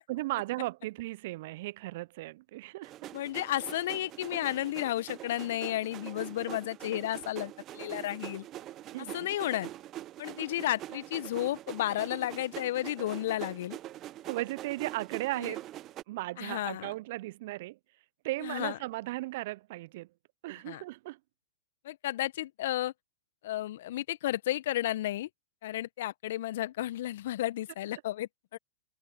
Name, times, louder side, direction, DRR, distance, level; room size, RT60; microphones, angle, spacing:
voice 1, 0.1-2.9 8.9-9.3 14.3-15.7 16.1-17.8 18.2-20.1 20.4-21.2, right 19 dB, 50° right, 0.7 m, -36 dB
sound 1, 2.8-16.0, right 14 dB, 30° right, 1.2 m, -44 dB
voice 2, 3.1-8.5 9.1-9.7 10.2-13.8 15.4-15.5 16.4-16.9 18.4-18.8 20.6-20.8 21.8-22.9 23.4-25.3 25.6-28.6, left 14 dB, 60° left, 1.5 m, -33 dB
figure-of-eight pair, 105°, 0 cm